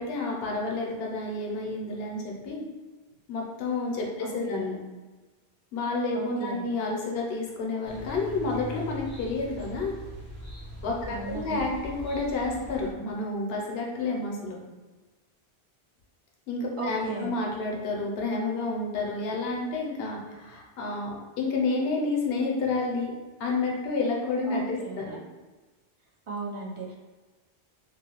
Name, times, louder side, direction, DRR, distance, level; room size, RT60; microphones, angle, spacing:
voice 1, 0.0-2.6 3.3-4.8 5.7-9.9 10.8-14.6 16.5-23.1 23.4-25.2, left 3 dB, 75° left, -1 dB, 0.8 m, -30 dB
voice 2, 4.2-4.8 6.1-6.7 11.1-11.6 16.8-17.3 24.5-25.2 26.3-26.9, right 4 dB, 45° right, -5 dB, 0.4 m, -36 dB
sound 1, 7.8-12.9, left 1 dB, 75° right, 1.1 m, -41 dB
2.4 x 2.1 x 2.8 m, 1.2 s
omnidirectional pair, 1.1 m